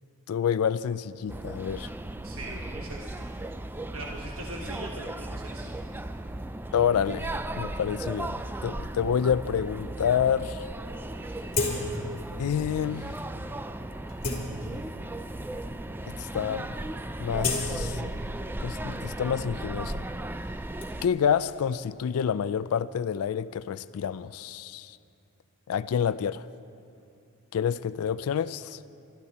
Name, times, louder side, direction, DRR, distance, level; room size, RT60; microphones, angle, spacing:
voice 1, 0.3-1.9 6.7-10.6 12.4-13.2 16.2-16.8 17.2-18.0 18.6-20.0 21.0-25.0 25.7-26.4 27.5-28.8, left 8 dB, 80° left, 0.4 m, -28 dB
sound 1, 1.3-21.1, right 1 dB, 10° right, 0.3 m, -36 dB
voice 2, 2.2-3.3 3.9-5.7, right 2 dB, 70° right, 1.2 m, -40 dB
sound 2, 11.5-12.2 12.6-12.7 13.4-13.5 13.9-15.1 15.8-15.9 16.1-16.5 16.8-18.6 18.9-20.8, left 3 dB, 40° left, 2.9 m, -33 dB
23.0 x 13.0 x 4.1 m
head